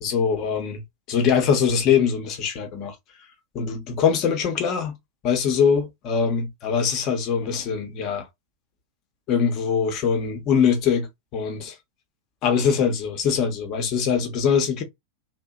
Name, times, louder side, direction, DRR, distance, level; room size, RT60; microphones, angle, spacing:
voice 1, 0.0-0.8 1.1-2.9 3.5-5.0 5.2-8.3 9.3-11.7 12.4-14.8, left 7 dB, 35° left, 0.8 m, -22 dB
2.7 x 2.1 x 2.3 m
figure-of-eight pair, 90°, 0 cm